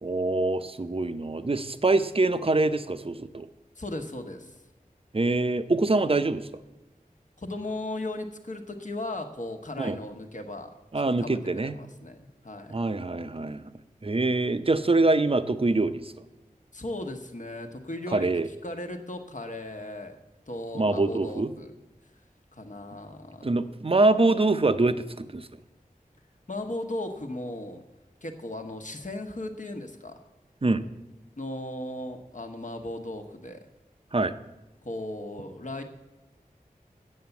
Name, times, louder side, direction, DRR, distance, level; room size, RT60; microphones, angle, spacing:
voice 1, 0.0-3.5 5.1-6.5 9.8-10.0 10.9-11.8 12.7-13.7 14.0-16.1 18.1-18.5 20.7-21.5 23.4-25.5 30.6-30.9 34.1-34.3, right 2 dB, 40° right, 11 dB, 0.6 m, -24 dB
voice 2, 3.8-4.6 7.4-10.7 11.0-12.8 16.7-18.3 18.6-20.2 20.5-21.7 22.5-23.5 26.5-27.8 28.2-30.1 31.4-33.7 34.8-35.8, left 1 dB, 55° left, 5 dB, 1.2 m, -36 dB
8.0 x 7.7 x 7.0 m, 1.0 s
wide cardioid pair, 40°, 15 cm